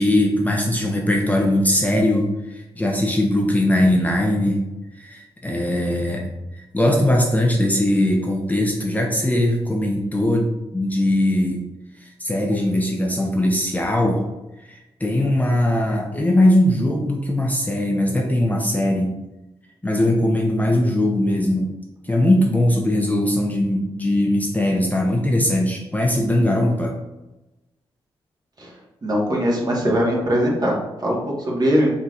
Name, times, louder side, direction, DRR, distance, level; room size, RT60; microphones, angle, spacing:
voice 1, 0.0-4.6 5.0-6.3 6.7-11.6 12.0-14.2 14.7-19.1 19.8-21.7 22.0-26.9, left 1 dB, 15° left, 0 dB, 0.8 m, -20 dB
voice 2, 29.0-31.9, equal, 35° right, -3 dB, 1.5 m, -21 dB
4.2 x 3.7 x 2.4 m, 1.0 s
supercardioid pair, 45°, 11 cm